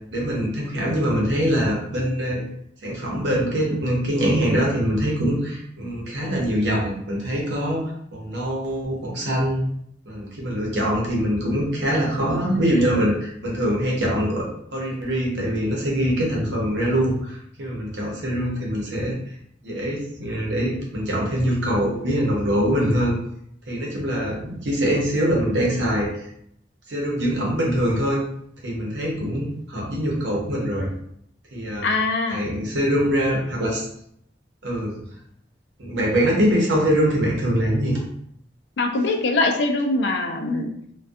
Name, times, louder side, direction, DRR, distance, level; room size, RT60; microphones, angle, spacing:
voice 1, 0.1-2.4 2.8-9.6 10.1-14.4 14.7-19.1 19.6-23.1 23.7-26.1 26.9-28.2 28.6-30.9 31.5-31.9 32.3-33.9 34.6-34.9 35.8-37.9, equal, 70° right, -2 dB, 0.8 m, -23 dB
voice 2, 31.8-32.4 38.8-40.7, left 2 dB, 70° left, 3 dB, 0.4 m, -22 dB
2.6 x 2.2 x 2.3 m, 0.70 s
head